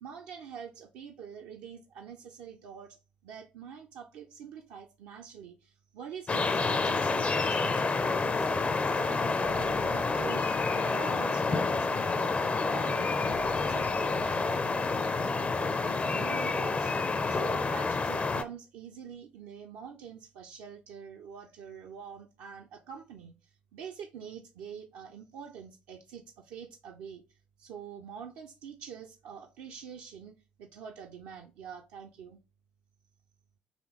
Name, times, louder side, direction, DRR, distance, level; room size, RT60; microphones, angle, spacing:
voice 1, 0.0-8.5 9.0-10.5 10.9-12.3 12.7-16.9 17.3-23.3 23.7-27.2 27.6-32.4, right 7 dB, 65° right, 0.4 m, -45 dB
sound 1, 6.3-18.4, left 3 dB, 30° left, 0.4 m, -28 dB
sound 2, 9.4-12.7 13.3-16.6, left 4 dB, 65° left, 0.7 m, -49 dB
4.1 x 2.7 x 2.9 m
figure-of-eight pair, 45°, 5 cm